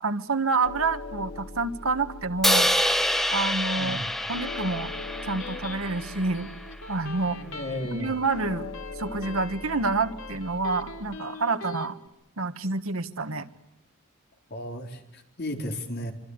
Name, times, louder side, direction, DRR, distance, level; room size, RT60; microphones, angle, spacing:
voice 1, 0.0-2.7 3.3-4.0 4.3-4.9 5.3-6.5 6.9-7.4 7.9-8.7 9.0-12.0 12.4-13.5, right 3 dB, 70° right, 9 dB, 1.5 m, -28 dB
sound 1, 0.6-11.2, left 3 dB, 90° left, 2.7 m, -42 dB
Crash cymbal, 2.4-6.6, equal, ahead, 1.1 m, -27 dB
voice 2, 3.7-4.1 7.4-8.2 14.5-16.1, left 1 dB, 50° left, 3 dB, 4.0 m, -34 dB
Electric guitar, 4.7-11.9, left 3 dB, 65° left, 3.3 m, -43 dB
26.5 x 25.5 x 8.1 m, 0.89 s
head